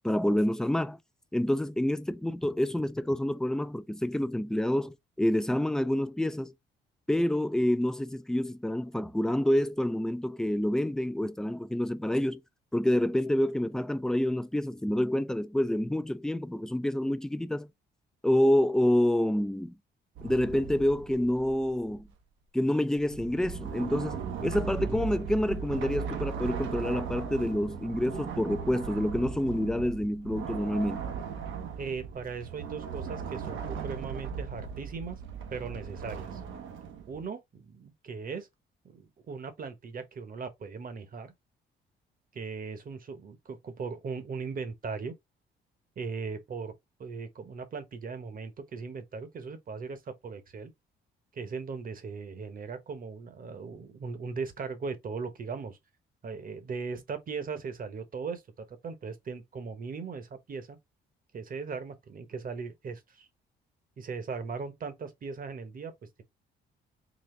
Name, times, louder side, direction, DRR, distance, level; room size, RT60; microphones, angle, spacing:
voice 1, 0.0-1.0 1.3-6.5 7.1-12.4 12.7-17.7 18.2-19.7 20.2-22.1 22.5-31.1, left 1 dB, 5° left, 0.4 m, -28 dB
sound 1, 20.2-22.1 23.0-37.2, right 7 dB, 75° right, 0.8 m, -38 dB
voice 2, 31.8-35.2 35.5-36.4 37.1-38.5 38.8-41.3 42.3-45.1 46.0-46.7 47.0-50.7 51.3-55.8 56.2-58.4 58.7-60.8 61.3-63.3 64.0-65.9, right 5 dB, 45° right, 1.0 m, -38 dB
4.1 x 2.5 x 3.1 m
cardioid pair, 90°, 20 cm